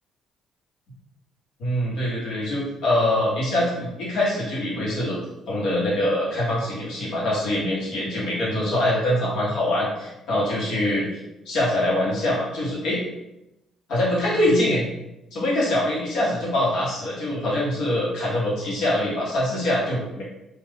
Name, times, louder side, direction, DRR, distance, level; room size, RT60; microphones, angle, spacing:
voice 1, 1.6-5.2 5.5-11.1 11.4-13.0 13.9-14.8 15.3-20.2, left 1 dB, 80° left, -5 dB, 1.2 m, -24 dB
2.5 x 2.4 x 3.5 m, 0.92 s
cardioid pair, 90°, 0 cm